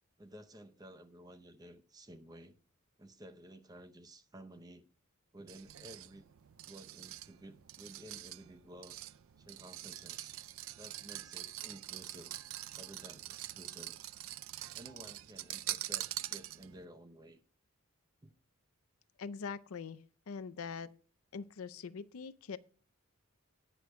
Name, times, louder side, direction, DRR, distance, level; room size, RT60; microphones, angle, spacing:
voice 1, 0.2-2.6 3.0-4.9 5.3-6.3 6.6-9.0 9.4-10.4 10.8-12.3 12.8-14.0 14.7-17.4 18.2-18.3, right 1 dB, 15° right, 0.6 m, -54 dB
sound 1, 5.5-16.9, right 14 dB, 70° right, 0.4 m, -44 dB
voice 2, 19.2-20.0 20.3-20.9 21.3-22.6, left 5 dB, 80° left, 0.5 m, -42 dB
18.5 x 6.5 x 2.2 m
head